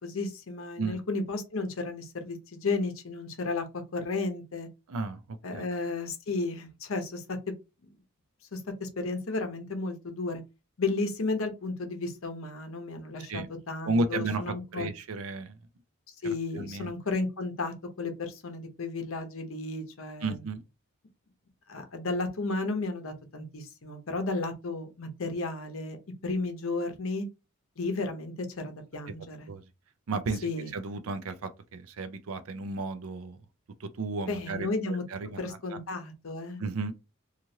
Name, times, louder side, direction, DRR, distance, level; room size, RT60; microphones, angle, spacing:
voice 1, 0.0-4.7 5.4-7.4 8.5-10.4 10.8-14.9 16.1-20.4 21.7-26.0 26.2-27.3 27.8-29.5 30.4-30.7 34.3-35.0 35.4-36.6, left 3 dB, 70° left, 0.7 m, -33 dB
voice 2, 4.9-5.6 13.3-13.5 13.8-15.6 16.5-16.9 20.2-20.6 29.5-29.6 30.1-33.4 33.8-35.8 36.6-36.9, right 3 dB, 80° right, 0.5 m, -33 dB
3.0 x 2.4 x 2.7 m
head